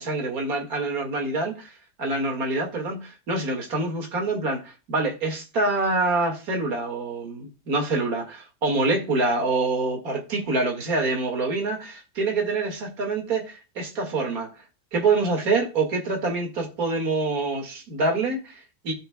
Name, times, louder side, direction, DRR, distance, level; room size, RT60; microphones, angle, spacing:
voice 1, 0.0-1.7 2.0-14.5 14.9-18.9, right 3 dB, 60° right, 2.3 m, -26 dB
15.0 x 5.7 x 2.2 m
omnidirectional pair, 1.8 m